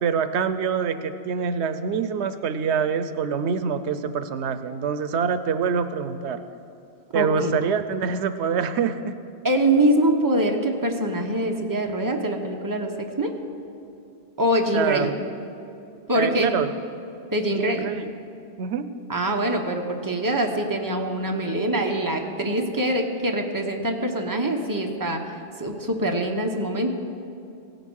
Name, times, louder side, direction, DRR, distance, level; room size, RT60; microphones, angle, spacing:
voice 1, 0.0-6.4 7.1-9.2 14.7-15.1 16.1-16.7 17.5-18.1 18.6-18.9, right 6 dB, 85° right, 11 dB, 0.9 m, -25 dB
voice 2, 7.1-7.5 9.4-13.3 14.4-15.1 16.1-16.5 17.3-17.9 19.1-26.9, right 1 dB, 20° right, 2 dB, 1.1 m, -24 dB
16.5 x 9.3 x 6.4 m, 2.7 s
omnidirectional pair, 1.1 m